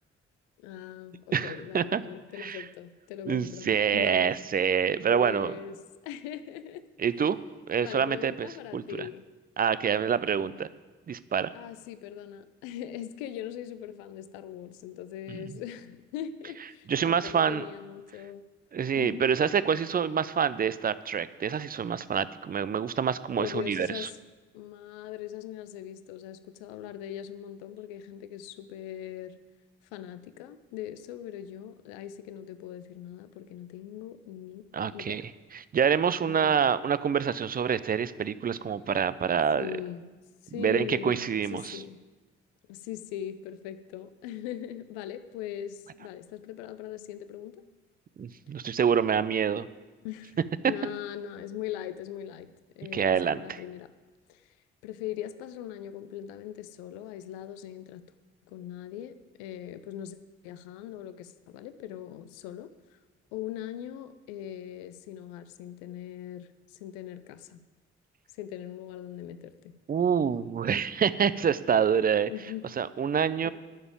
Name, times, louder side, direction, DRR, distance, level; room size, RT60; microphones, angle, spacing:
voice 1, 0.6-4.4 5.1-5.8 6.0-6.8 7.1-7.2 7.8-9.2 10.4-10.7 11.5-18.4 19.0-19.3 23.4-24.2 24.5-29.4 29.9-34.6 34.9-35.2 36.3-36.7 39.5-40.1 40.4-42.0 42.7-47.6 50.0-50.4 50.6-52.5 52.8-53.9 54.3-54.5 54.8-58.0 58.5-60.2 60.4-62.7 63.3-67.6 68.4-69.7 72.3-72.6 73.4-73.5, left 11 dB, 65° left, 12 dB, 0.7 m, -40 dB
voice 2, 1.3-2.0 2.4-2.6 3.3-5.5 7.0-7.4 7.7-8.5 8.7-9.1 9.6-10.7 11.1-11.5 15.3-15.4 16.9-17.7 18.7-24.1 34.7-39.7 40.6-41.8 48.2-49.7 52.9-53.6 69.9-72.3 72.8-73.5, right 7 dB, 25° right, 16 dB, 0.6 m, -27 dB
10.5 x 6.9 x 8.9 m, 1.3 s
figure-of-eight pair, 40°, 34 cm